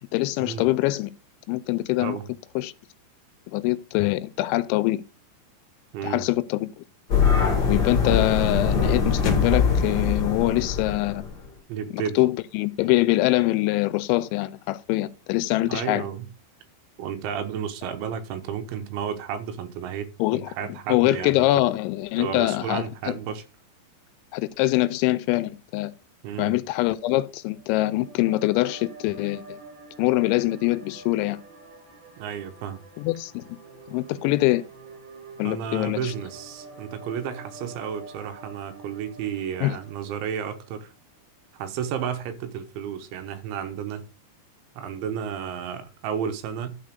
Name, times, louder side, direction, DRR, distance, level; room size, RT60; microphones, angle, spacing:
voice 1, 0.1-1.1 1.5-2.2 2.6-2.7 3.5-5.0 6.0-6.8 7.7-11.2 11.9-16.1 20.2-20.5 20.9-23.2 24.3-25.9 26.4-29.6 30.0-31.4 33.0-33.4 33.9-34.7 35.4-36.1 39.6-39.8, left 18 dB, 85° left, 2.9 m, -24 dB
voice 2, 5.9-6.3 11.7-12.2 15.6-16.3 17.0-21.5 22.2-23.4 26.2-26.5 32.2-32.8 35.4-40.9 41.5-44.1 44.8-46.8, right 8 dB, 85° right, 3.4 m, -32 dB
sound 1, 7.1-11.3, left 5 dB, 60° left, 1.0 m, -22 dB
sound 2, 27.5-40.8, right 3 dB, 65° right, 7.3 m, -47 dB
12.0 x 4.4 x 5.1 m
omnidirectional pair, 5.3 m